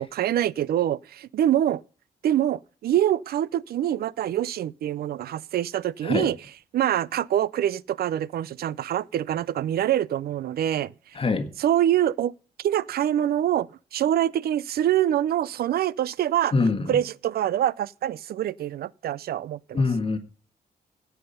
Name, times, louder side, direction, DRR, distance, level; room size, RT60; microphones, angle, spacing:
voice 1, 0.0-1.8 2.2-6.4 6.7-10.9 11.6-12.3 12.6-16.5 16.9-19.8, right 11 dB, 75° right, 0.4 m, -25 dB
voice 2, 11.1-11.5 16.5-17.0 19.7-20.2, left 3 dB, 35° left, 1.6 m, -24 dB
16.5 x 5.7 x 5.5 m
cardioid pair, 110°, 16 cm